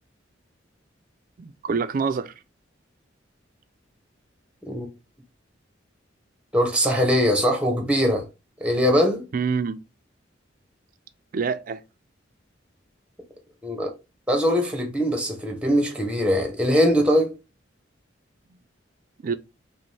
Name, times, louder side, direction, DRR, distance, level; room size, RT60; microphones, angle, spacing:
voice 1, 1.4-2.3 9.3-9.8 11.3-11.8 19.2-19.3, right 5 dB, 45° right, 0.3 m, -26 dB
voice 2, 6.5-8.2 8.6-9.2 13.6-13.9 14.3-17.3, equal, 5° right, 0.8 m, -21 dB
4.9 x 2.1 x 3.2 m
head